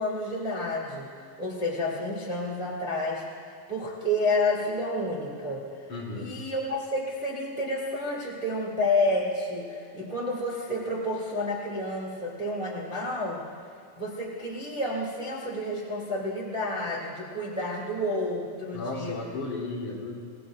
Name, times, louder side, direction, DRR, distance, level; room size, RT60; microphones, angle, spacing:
voice 1, 0.0-13.4 13.9-19.2, left 1 dB, 45° right, -4 dB, 0.6 m, -30 dB
voice 2, 5.9-6.3 18.7-20.1, left 3 dB, 35° left, -5 dB, 4.2 m, -34 dB
27.5 x 20.5 x 2.5 m, 2.4 s
omnidirectional pair, 5.9 m